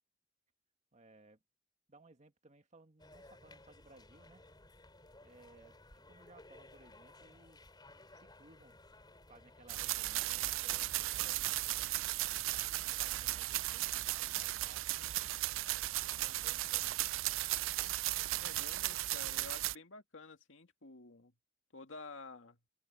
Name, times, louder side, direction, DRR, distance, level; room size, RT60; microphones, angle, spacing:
voice 1, 0.9-1.4 1.9-4.4 5.2-7.7 8.1-8.8 9.3-12.0 12.7-15.1 16.0-17.0, right 2 dB, 35° right, 2.0 m, -62 dB
sound 1, 3.0-11.2, left 2 dB, 20° left, 4.5 m, -59 dB
sound 2, 9.7-19.8, right 16 dB, 85° right, 0.4 m, -36 dB
voice 2, 18.3-21.3 21.7-22.6, left 3 dB, 75° left, 2.3 m, -51 dB
open air
head